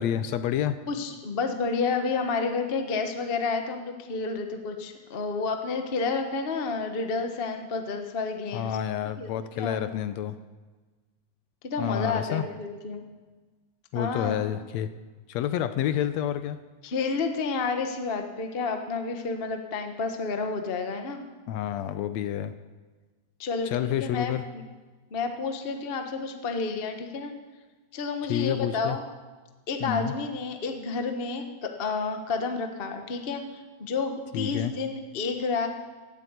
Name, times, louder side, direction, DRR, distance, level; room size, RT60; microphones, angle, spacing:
voice 1, 0.0-0.8 8.5-10.4 11.8-12.4 13.9-14.9 15.3-16.6 21.5-22.5 23.7-24.4 28.3-29.0 29.8-30.1 34.3-34.7, left 10 dB, 75° left, 12 dB, 1.8 m, -29 dB
voice 2, 0.9-8.8 9.2-9.3 9.6-9.8 11.6-13.0 13.9-14.5 16.8-21.2 23.4-24.3 25.1-27.3 27.9-29.0 29.7-35.7, left 4 dB, 50° left, 5 dB, 0.6 m, -30 dB
17.0 x 8.7 x 8.2 m, 1.3 s
omnidirectional pair, 3.4 m